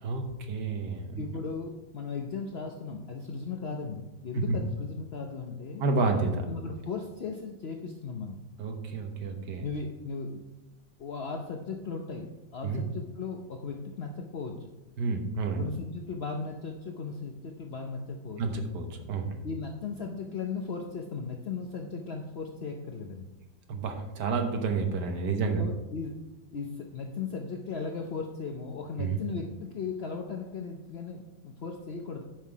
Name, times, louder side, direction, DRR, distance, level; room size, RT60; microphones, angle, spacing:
voice 1, 0.0-1.2 4.3-4.6 5.8-6.5 8.6-9.6 12.6-12.8 15.0-15.6 18.4-19.4 23.7-25.6 29.0-29.2, right 4 dB, 65° right, 4 dB, 1.7 m, -30 dB
voice 2, 1.2-5.8 6.5-8.4 9.6-10.4 11.0-12.3 12.5-14.7 15.6-18.4 19.4-23.2 25.5-26.2 26.5-32.2, left 4 dB, 65° left, 2 dB, 0.6 m, -37 dB
10.0 x 5.8 x 4.6 m, 1.0 s
omnidirectional pair, 2.1 m